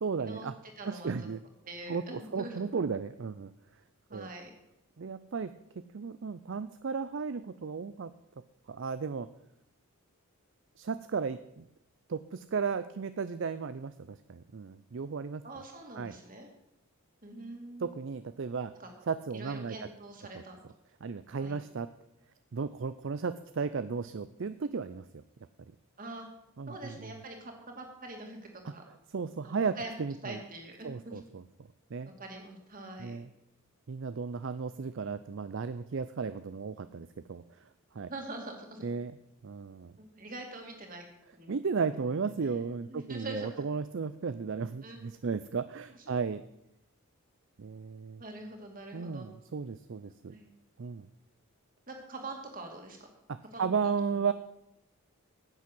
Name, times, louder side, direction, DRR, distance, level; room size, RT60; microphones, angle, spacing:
voice 1, 0.0-0.5 0.8-1.4 1.9-3.5 4.1-4.3 5.0-5.5 5.9-8.1 8.7-9.3 10.8-11.6 12.1-15.4 16.0-16.2 17.8-18.7 19.1-19.8 21.0-21.9 22.5-25.2 26.6-27.1 28.6-28.7 29.1-30.4 30.8-31.4 31.9-32.1 33.0-33.3 33.9-37.4 37.9-38.1 38.8-39.1 39.4-39.9 41.5-46.4 47.6-48.2 48.9-50.3 50.8-51.1 53.6-54.3, right 5 dB, 55° right, 13 dB, 0.4 m, -34 dB
voice 2, 0.8-1.1 1.6-2.6 4.1-4.5 15.4-16.5 17.2-18.0 18.7-18.9 19.3-20.6 21.4-21.6 26.0-26.3 26.7-28.8 29.4-29.9 30.2-31.2 32.2-33.2 38.1-38.8 40.0-41.0 41.3-41.6 42.4-43.6 44.8-45.0 46.0-46.2 48.2-49.3 50.3-50.4 51.9-53.1 53.5-54.3, right 2 dB, 40° right, 3 dB, 2.5 m, -44 dB
10.5 x 8.5 x 7.7 m, 0.83 s
head